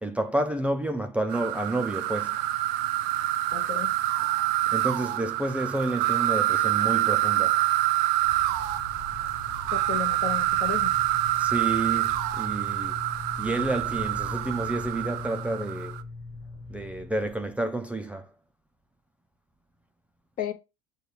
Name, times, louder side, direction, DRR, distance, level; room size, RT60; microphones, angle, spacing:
voice 1, 0.0-2.4 4.7-7.6 11.4-13.0 13.4-16.0 16.7-18.3, right 2 dB, 5° right, 0.4 m, -30 dB
sound 1, 1.3-16.0, right 15 dB, 65° right, 0.4 m, -26 dB
voice 2, 3.5-3.9 9.7-10.9 20.4-20.5, left 8 dB, 45° left, 0.8 m, -33 dB
sound 2, 8.2-17.6, left 3 dB, 20° left, 1.2 m, -41 dB
6.5 x 2.3 x 3.1 m
hypercardioid pair, 85°, 19 cm